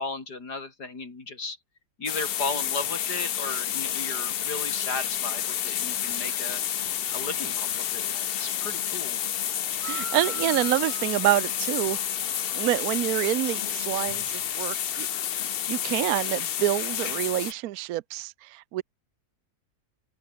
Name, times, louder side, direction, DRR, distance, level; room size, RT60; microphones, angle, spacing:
voice 1, 0.0-1.6 2.0-6.6 7.1-9.2, left 3 dB, 85° left, 4.5 m, -35 dB
sound 1, 2.1-17.5, left 10 dB, 65° left, 0.6 m, -30 dB
sound 2, 9.8-13.0, right 4 dB, 40° right, 2.0 m, -43 dB
voice 2, 9.8-12.0 12.5-15.1 15.7-18.8, right 15 dB, 70° right, 1.1 m, -27 dB
open air
omnidirectional pair, 1.7 m